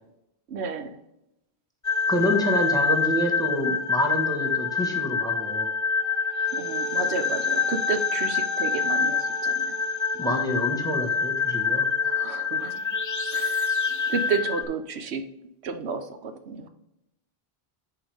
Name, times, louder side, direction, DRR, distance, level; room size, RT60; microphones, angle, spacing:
voice 1, 0.5-1.0 6.5-9.7 12.0-12.8 13.3-13.7 14.1-15.3 15.6-16.7, right 5 dB, 85° right, 8 dB, 1.0 m, -32 dB
sound 1, 1.8-14.6, left 5 dB, 25° left, 0.4 m, -26 dB
voice 2, 2.1-5.7 10.1-11.9, equal, 5° left, 2 dB, 1.4 m, -27 dB
9.9 x 4.8 x 3.5 m, 0.87 s
omnidirectional pair, 1.1 m